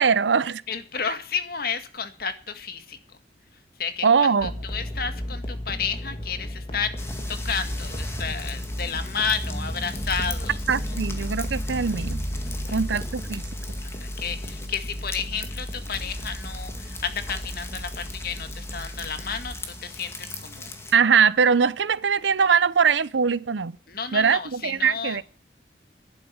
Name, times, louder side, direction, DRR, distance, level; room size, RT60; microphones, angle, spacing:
voice 1, 0.0-0.6 4.0-4.5 10.7-12.2 12.7-13.4 20.9-23.7 24.1-25.2, right 6 dB, 80° right, 0.6 m, -21 dB
voice 2, 0.7-3.0 3.8-10.6 10.9-11.0 12.6-12.8 13.8-19.6 19.8-20.7 23.9-25.2, left 6 dB, 55° left, 1.9 m, -32 dB
sound 1, 4.4-19.5, equal, 30° left, 2.4 m, -34 dB
sound 2, 7.0-20.9, left 1 dB, 15° left, 2.0 m, -37 dB
11.5 x 10.5 x 9.6 m
head